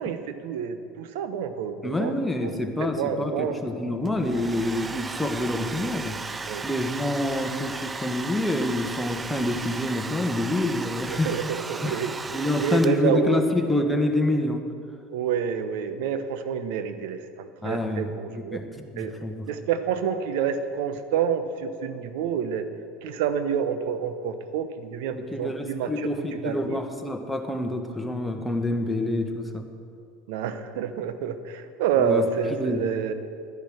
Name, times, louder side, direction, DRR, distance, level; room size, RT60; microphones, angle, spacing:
voice 1, 0.0-2.1 2.4-2.5 3.0-3.6 6.5-6.7 11.1-12.1 12.6-13.4 15.1-18.6 19.0-19.1 19.5-22.7 23.0-26.8 30.3-33.1, right 7 dB, 65° right, 10 dB, 0.9 m, -28 dB
voice 2, 1.8-6.2 6.6-11.3 11.8-12.0 12.3-14.6 17.6-19.5 25.1-29.7 32.0-32.2 32.5-32.8, left 1 dB, 5° left, 3 dB, 1.4 m, -27 dB
Domestic sounds home sounds, 4.0-13.3, right 4 dB, 20° right, 0.5 m, -35 dB
11.5 x 10.5 x 6.4 m, 2.5 s
hypercardioid pair, 75°, 0 cm